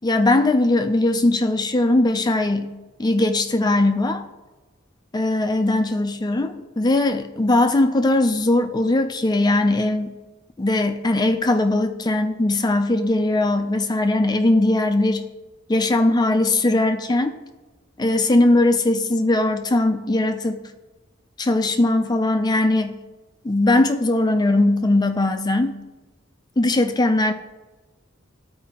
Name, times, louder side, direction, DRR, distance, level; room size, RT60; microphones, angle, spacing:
voice 1, 0.0-2.7 3.0-4.2 5.1-10.1 10.6-15.2 15.7-17.4 18.0-20.6 21.4-23.0 23.4-25.8 26.6-27.3, left 2 dB, 20° left, 7 dB, 0.4 m, -20 dB
13.0 x 4.6 x 2.9 m, 1.1 s
head